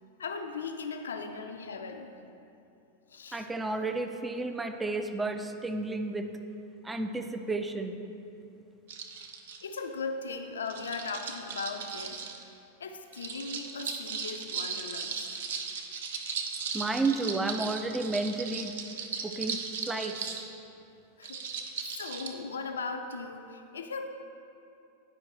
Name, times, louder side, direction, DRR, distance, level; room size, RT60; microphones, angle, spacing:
voice 1, 0.2-2.1 3.1-3.5 9.6-15.4 21.2-21.7 22.0-24.1, left 4 dB, 70° left, 5 dB, 0.5 m, -38 dB
voice 2, 3.3-6.3 6.8-8.0 16.7-18.7 19.2-20.2, right 3 dB, 10° right, 7 dB, 0.4 m, -32 dB
sound 1, 8.9-9.8 10.7-12.4 13.1-20.5 21.2-22.3, right 5 dB, 60° right, 0.6 m, -37 dB
10.5 x 5.1 x 3.0 m, 2.7 s
figure-of-eight pair, 90°, 0 cm